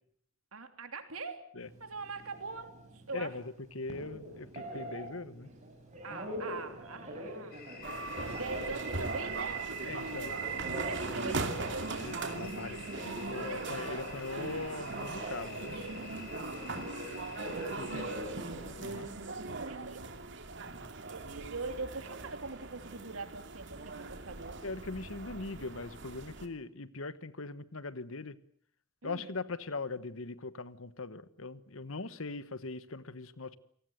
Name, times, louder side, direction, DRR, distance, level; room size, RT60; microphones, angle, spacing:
voice 1, 0.5-1.5 1.8-3.3 6.0-10.3 10.7-11.9 13.5-13.7 16.2-18.3 19.2-20.0 20.6-24.6 29.0-29.3, right 3 dB, 85° right, 7 dB, 3.2 m, -43 dB
Telephone, 1.6-18.7, right 1 dB, 35° right, 7.2 m, -44 dB
voice 2, 3.1-3.4 3.7-5.5 9.8-10.4 12.0-15.8 17.8-18.1 18.8-19.1 24.6-28.4 29.0-33.6, left 3 dB, 70° left, 15 dB, 1.2 m, -40 dB
sound 1, 7.5-18.2, left 4 dB, 45° left, 5.4 m, -50 dB
sound 2, 7.8-26.5, right 4 dB, 60° right, 2.5 m, -40 dB
28.5 x 19.0 x 8.1 m, 0.64 s
head